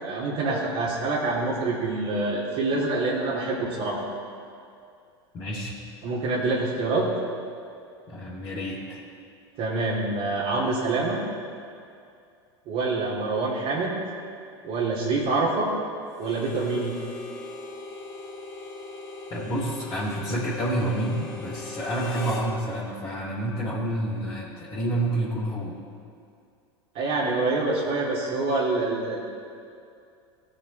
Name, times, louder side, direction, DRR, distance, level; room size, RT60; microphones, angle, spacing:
voice 1, 0.0-4.0 6.0-7.1 9.6-11.2 12.7-13.9 14.6-15.7 16.2-16.9 26.9-29.2, right 3 dB, 50° right, -7 dB, 2.8 m, -26 dB
voice 2, 5.3-5.7 8.1-9.0 19.3-25.8, right 1 dB, 30° left, -8 dB, 3.0 m, -29 dB
Harmonica, 16.1-22.5, left 3 dB, 70° left, 3.1 m, -39 dB
17.5 x 6.9 x 4.2 m, 2.4 s
hypercardioid pair, 85°, 14 cm